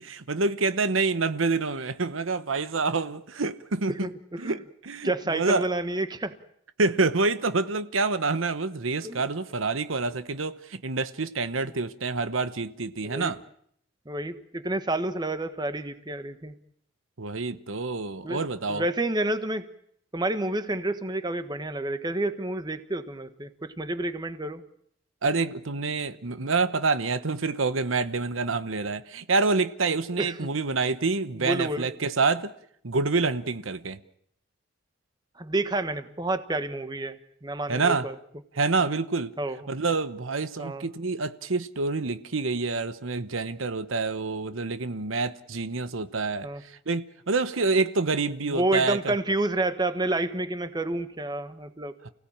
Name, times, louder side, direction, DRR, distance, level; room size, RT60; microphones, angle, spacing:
voice 1, 0.0-4.1 4.4-4.6 4.8-5.7 6.8-13.4 17.2-18.8 25.2-32.5 32.8-34.0 37.7-38.1 38.6-39.3 39.7-46.5 46.9-49.1, right 3 dB, 85° right, 1.1 m, -27 dB
voice 2, 3.9-4.6 5.0-6.4 9.0-9.2 11.6-11.7 13.0-13.3 14.0-16.5 18.2-19.7 20.1-24.6 30.2-30.5 31.3-31.9 35.4-38.1 39.4-39.6 40.6-40.9 46.4-46.6 48.5-51.9, right 2 dB, 20° right, 1.3 m, -29 dB
29.0 x 17.0 x 8.7 m
head